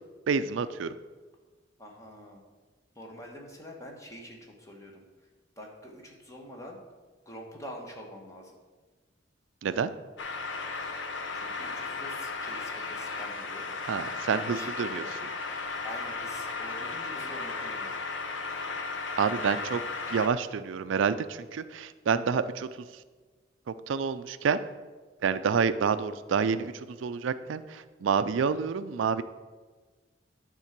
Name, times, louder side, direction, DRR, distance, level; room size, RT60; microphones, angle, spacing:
voice 1, 0.3-0.9 9.6-9.9 13.9-15.0 19.2-19.8 20.1-22.7 23.9-24.6 25.2-29.2, right 6 dB, 85° right, 13 dB, 0.4 m, -28 dB
voice 2, 1.8-2.4 2.9-5.0 5.6-6.8 7.2-8.5 11.3-13.7 14.3-15.1 15.8-18.0, equal, 15° left, 0 dB, 1.3 m, -45 dB
sound 1, 10.2-20.3, left 4 dB, 80° left, 0.8 m, -35 dB
9.9 x 3.8 x 5.9 m, 1.4 s
head